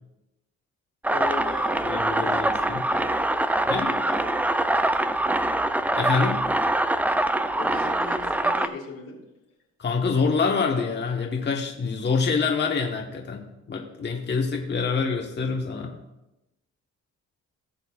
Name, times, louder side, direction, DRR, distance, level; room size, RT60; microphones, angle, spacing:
sound 1, 1.0-8.7, right 1 dB, 5° right, 0.4 m, -24 dB
voice 1, 1.1-2.5 2.9-4.5 7.5-9.2, left 4 dB, 85° left, -2 dB, 2.7 m, -39 dB
voice 2, 1.9-2.8 3.7-4.0 6.0-6.4 9.8-15.9, left 5 dB, 35° left, 1 dB, 1.2 m, -26 dB
16.5 x 6.8 x 2.4 m, 0.93 s
cardioid pair, 90°, 30 cm